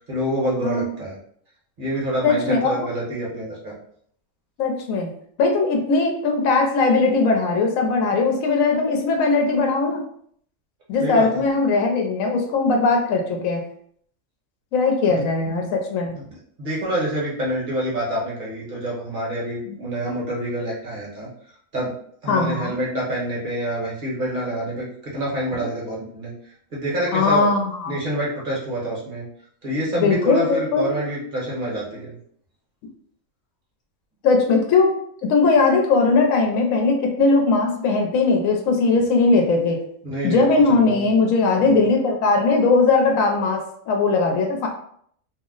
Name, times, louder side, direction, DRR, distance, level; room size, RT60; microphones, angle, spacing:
voice 1, 0.1-1.2 1.8-3.8 11.0-11.3 15.0-15.1 16.6-21.3 21.7-21.9 22.2-26.3 26.7-27.5 27.9-29.3 29.6-32.2 40.0-41.2 41.6-41.8, right 1 dB, 40° right, -5 dB, 1.0 m, -27 dB
voice 2, 2.2-2.9 4.6-5.1 5.4-10.0 10.9-13.6 14.7-16.1 19.7-19.8 22.3-22.7 27.1-28.0 29.9-30.9 34.2-34.9 35.3-39.8 40.2-44.7, left 3 dB, 80° left, 2 dB, 1.0 m, -19 dB
2.6 x 2.0 x 3.7 m, 0.64 s
omnidirectional pair, 1.4 m